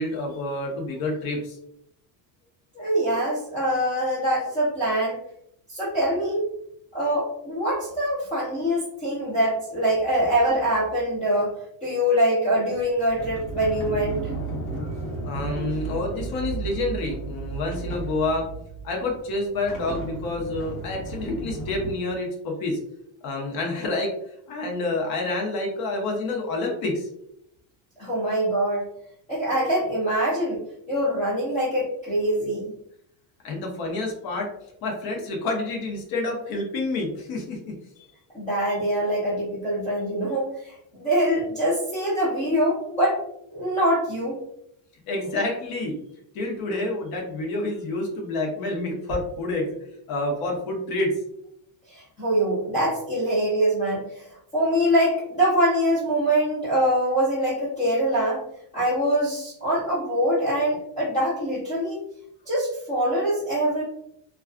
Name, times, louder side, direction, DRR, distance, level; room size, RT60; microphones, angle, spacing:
voice 1, 0.0-1.6 15.2-18.5 18.8-22.8 23.2-24.1 24.5-27.1 33.4-34.5 34.8-37.7 45.1-45.9 46.3-49.8 50.1-51.1, left 2 dB, 50° left, 1 dB, 0.7 m, -28 dB
voice 2, 2.7-5.2 5.7-6.4 6.9-11.5 11.8-14.3 28.0-28.8 29.3-32.7 38.3-43.2 43.5-44.4 51.9-58.4 58.7-62.1 62.5-63.8, equal, 15° left, -10 dB, 0.5 m, -24 dB
Sliding door, 12.7-21.9, right 3 dB, 85° left, 1.0 m, -34 dB
2.3 x 2.2 x 2.3 m, 0.75 s
cardioid pair, 165°, 47 cm